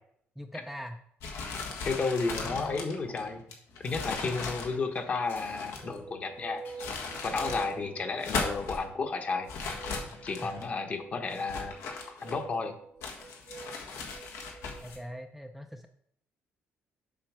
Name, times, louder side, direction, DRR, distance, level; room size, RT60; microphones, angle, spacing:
voice 1, 0.4-1.0 4.2-4.4 10.1-10.2 14.8-15.9, equal, ahead, 4 dB, 0.4 m, -42 dB
sound 1, 1.2-6.0 6.6-7.7 8.1-8.8 9.5-10.7 11.3-12.6 13.0-15.0, left 4 dB, 85° left, 1.5 m, -38 dB
voice 2, 1.9-3.4 3.8-6.9 7.2-9.5 10.2-11.7 12.2-12.7, left 4 dB, 35° left, 6 dB, 1.0 m, -32 dB
sound 2, 3.7-8.1, left 3 dB, 60° left, 2.7 m, -54 dB
sound 3, 5.8-15.2, right 4 dB, 35° right, 0.8 m, -47 dB
7.5 x 4.5 x 6.0 m, 0.69 s
cardioid pair, 150°, 4 cm